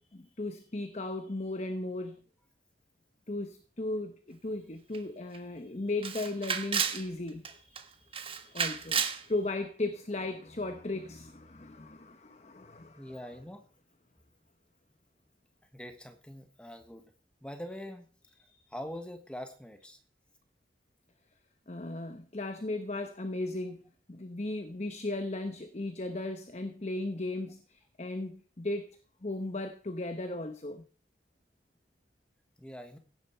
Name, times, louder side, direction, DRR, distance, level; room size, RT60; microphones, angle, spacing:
voice 1, 0.0-2.2 3.3-13.2 21.7-23.8 24.1-30.8, left 2 dB, 40° left, 0.9 m, -36 dB
Camera, 4.9-5.0 5.3-5.4 6.0-7.0 7.4-7.8 8.1-9.2, right 7 dB, 30° right, 1.3 m, -31 dB
voice 2, 13.0-13.6 15.7-17.1 17.4-18.1 18.7-20.0 32.6-33.0, equal, 5° left, 1.3 m, -43 dB
16.0 x 10.5 x 4.4 m
head